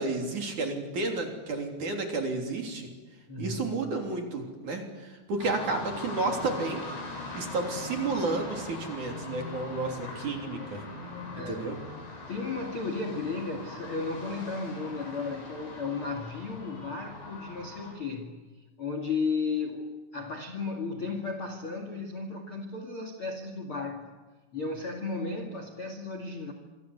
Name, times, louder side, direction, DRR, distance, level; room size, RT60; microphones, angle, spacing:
voice 1, 0.0-2.9 3.4-6.8 7.3-10.8 11.3-11.8, right 3 dB, 45° right, 3 dB, 4.3 m, -31 dB
voice 2, 3.3-3.9 11.3-11.7 12.3-18.4 18.8-24.1 24.5-26.5, left 4 dB, 40° left, 5 dB, 2.1 m, -34 dB
sound 1, 5.4-17.9, left 2 dB, 75° left, 10.0 m, -41 dB
27.5 x 23.5 x 8.2 m, 1.3 s
omnidirectional pair, 5.5 m